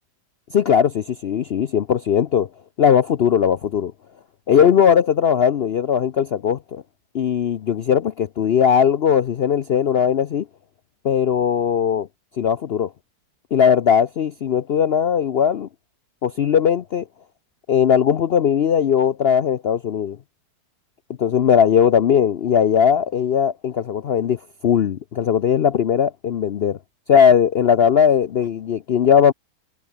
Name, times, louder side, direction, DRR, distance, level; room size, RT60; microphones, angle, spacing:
voice 1, 0.5-2.5 2.8-3.9 4.5-6.8 7.1-10.5 11.0-12.1 12.4-12.9 13.5-15.7 16.2-17.0 17.7-20.2 21.2-26.8 27.1-29.3, left 8 dB, 65° left, 0.6 m, -18 dB
omnidirectional pair, 1.8 m